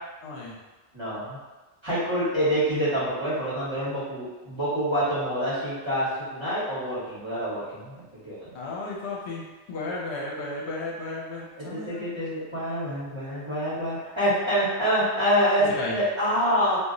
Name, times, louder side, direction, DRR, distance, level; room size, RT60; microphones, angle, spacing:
voice 1, 0.2-0.6 8.5-9.4 9.7-12.1 15.8-16.0, left 2 dB, 75° left, -4 dB, 0.9 m, -34 dB
voice 2, 0.9-1.4 1.8-8.5 11.6-16.8, equal, 25° right, -11 dB, 1.0 m, -26 dB
2.4 x 2.1 x 3.7 m, 1.2 s
omnidirectional pair, 1.1 m